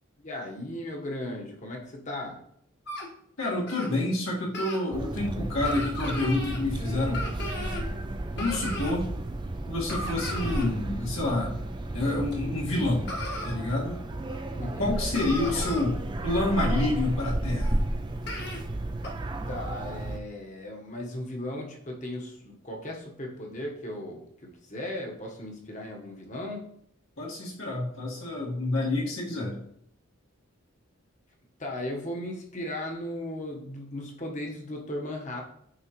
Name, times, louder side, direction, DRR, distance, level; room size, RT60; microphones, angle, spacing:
voice 1, 0.2-2.4 14.5-14.9 19.5-26.7 31.6-35.4, left 1 dB, 35° left, 0 dB, 1.2 m, -36 dB
sound 1, 2.9-3.1 3.7-3.9 4.5-4.8 5.7-6.6 7.1-7.9 8.4-9.0 9.9-10.7 12.3-12.4 13.1-13.5 14.3-14.4 14.8-14.9 15.1-15.9 17.6-17.7 18.3-18.6 19.0-19.1, left 1 dB, 55° left, 1.4 m, -36 dB
voice 2, 3.4-7.2 8.4-9.0 9.7-11.5 11.9-13.1 13.4-14.0 14.8-17.8 27.2-29.6, left 2 dB, 75° left, -4 dB, 1.9 m, -28 dB
sound 2, 4.9-20.2, right 1 dB, 20° right, 0.4 m, -33 dB
9.0 x 3.8 x 3.0 m, 0.69 s
head